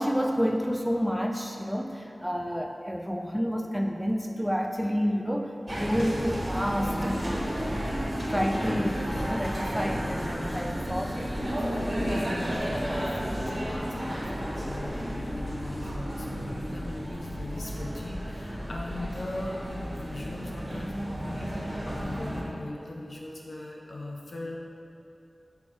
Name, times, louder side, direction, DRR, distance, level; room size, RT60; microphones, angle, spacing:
voice 1, 0.0-7.9 8.3-11.3, equal, ahead, 3 dB, 0.3 m, -29 dB
sound 1, 5.7-22.4, equal, 40° right, 1.4 m, -32 dB
voice 2, 12.8-24.6, left 2 dB, 70° left, -3 dB, 0.6 m, -39 dB
5.7 x 4.4 x 4.5 m, 2.7 s
wide cardioid pair, 75°, 0 cm